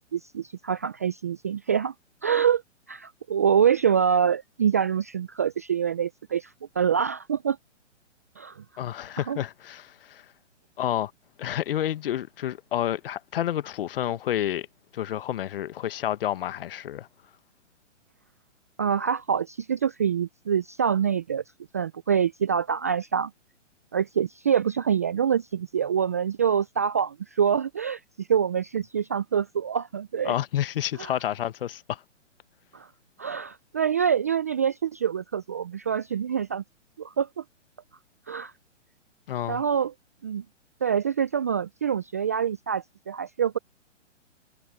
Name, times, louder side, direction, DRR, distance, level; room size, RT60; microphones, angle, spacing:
voice 1, 0.0-1.9 2.2-2.6 2.9-7.6 8.4-8.6 9.3-9.4 18.8-21.4 21.7-23.3 23.9-30.3 31.0-31.1 32.7-32.9 33.2-36.6 37.0-37.4 38.3-38.5 39.5-39.9 40.2-40.4 40.8-43.6, right 8 dB, 15° right, 0.3 m, -25 dB
voice 2, 8.8-10.2 10.8-11.1 11.4-14.7 14.9-17.1 30.2-32.0 39.3-39.6, left 11 dB, 50° left, 1.3 m, -29 dB
figure-of-eight pair, 125°, 37 cm